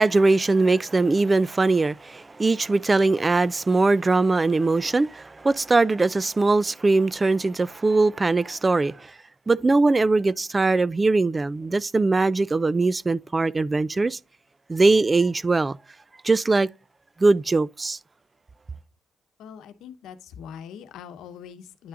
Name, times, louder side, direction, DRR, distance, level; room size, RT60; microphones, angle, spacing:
voice 1, 0.0-9.1 9.5-14.2 14.7-15.8 16.2-16.7 17.2-18.0, right 3 dB, 25° right, 0.3 m, -21 dB
voice 2, 19.4-21.9, left 8 dB, 85° left, 0.9 m, -42 dB
9.7 x 5.7 x 2.4 m
cardioid pair, 90°, 0 cm